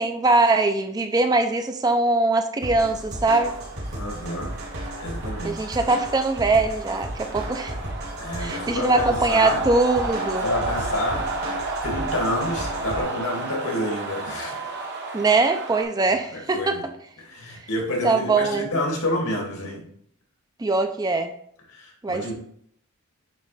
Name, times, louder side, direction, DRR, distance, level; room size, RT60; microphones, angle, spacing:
voice 1, 0.0-3.5 5.4-7.7 8.4-10.5 15.1-16.9 18.0-18.7 20.6-21.3 22.0-22.3, right 3 dB, 15° right, 7 dB, 0.4 m, -22 dB
sound 1, 2.6-13.0, right 1 dB, 70° right, 2.2 m, -34 dB
sound 2, 3.2-15.8, right 3 dB, 50° right, 1.0 m, -33 dB
voice 2, 3.9-4.5 5.0-5.7 8.2-9.6 10.4-11.3 11.8-14.7 16.1-16.9 17.2-19.9 21.7-22.3, left 1 dB, 80° left, 0 dB, 2.1 m, -29 dB
9.0 x 3.3 x 3.2 m, 0.67 s
head